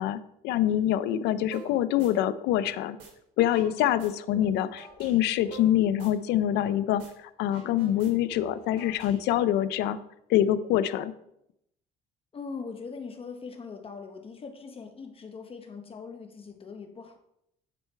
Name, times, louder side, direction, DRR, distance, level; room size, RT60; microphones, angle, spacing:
voice 1, 0.0-3.0 3.4-10.0 10.3-11.1, left 12 dB, 85° left, 15 dB, 0.5 m, -25 dB
sound 1, 1.5-1.7 2.0-3.1 3.4-6.7 7.0-7.1 7.4-9.5, right 5 dB, 85° right, 3.0 m, -47 dB
voice 2, 12.3-17.2, left 5 dB, 35° left, 6 dB, 0.8 m, -41 dB
9.9 x 4.5 x 4.5 m, 0.79 s
cardioid pair, 110°, 17 cm